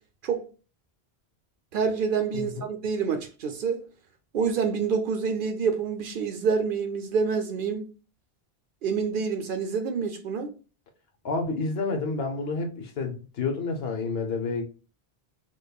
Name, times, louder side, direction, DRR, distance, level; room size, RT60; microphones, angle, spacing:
voice 1, 1.7-3.8 4.3-7.9 8.8-10.5, right 5 dB, 60° right, 0.7 m, -27 dB
voice 2, 2.3-2.6 11.2-14.7, left 3 dB, 75° left, 1.0 m, -29 dB
5.1 x 2.3 x 2.3 m
omnidirectional pair, 1.1 m